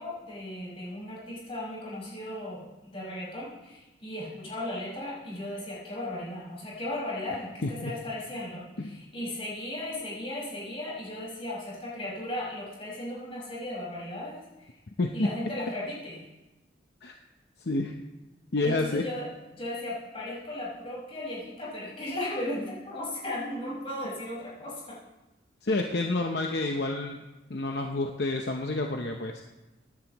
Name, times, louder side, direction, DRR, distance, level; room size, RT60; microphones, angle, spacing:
voice 1, 0.0-14.7 15.1-16.2 18.6-25.0, left 1 dB, 30° left, -6 dB, 5.4 m, -36 dB
voice 2, 18.5-19.0 25.6-27.2 27.5-29.4, left 2 dB, 60° left, 2 dB, 0.8 m, -29 dB
24.0 x 11.0 x 3.0 m, 1.1 s
head